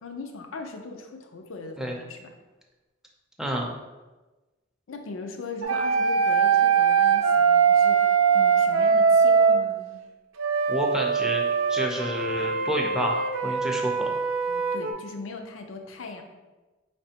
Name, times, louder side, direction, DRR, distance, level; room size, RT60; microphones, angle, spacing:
voice 1, 0.0-2.3 4.9-10.0 14.5-16.2, left 3 dB, 80° left, 5 dB, 0.5 m, -39 dB
voice 2, 3.4-3.7 10.7-11.4 11.7-14.2, equal, 5° right, -1 dB, 0.5 m, -29 dB
sound 1, 5.6-9.6 10.4-14.9, right 6 dB, 90° right, 0.5 m, -22 dB
4.9 x 3.3 x 2.8 m, 1.2 s
head